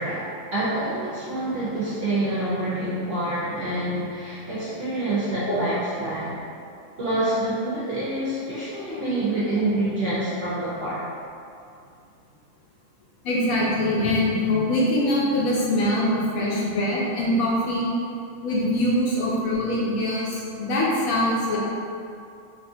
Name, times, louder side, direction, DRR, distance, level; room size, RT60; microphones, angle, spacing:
voice 1, 0.0-6.3 7.0-11.1, right 1 dB, 55° right, -11 dB, 0.7 m, -27 dB
voice 2, 13.2-17.9 18.4-21.6, left 1 dB, 70° left, -5 dB, 1.0 m, -23 dB
3.4 x 2.4 x 2.6 m, 2.5 s
omnidirectional pair, 1.7 m